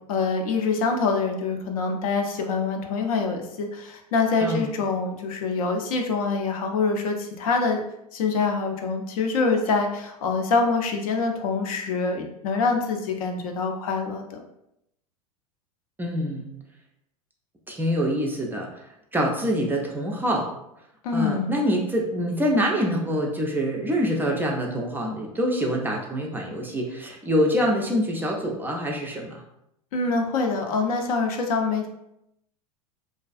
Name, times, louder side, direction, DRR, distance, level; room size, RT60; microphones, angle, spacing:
voice 1, 0.0-7.8 8.1-14.4 21.0-21.6 29.9-31.9, left 4 dB, 65° left, 3 dB, 0.5 m, -25 dB
voice 2, 16.0-16.5 17.7-18.7 19.1-20.5 21.1-29.4, equal, 10° right, 0 dB, 0.3 m, -25 dB
2.4 x 2.3 x 2.4 m, 0.80 s
hypercardioid pair, 90°, 20 cm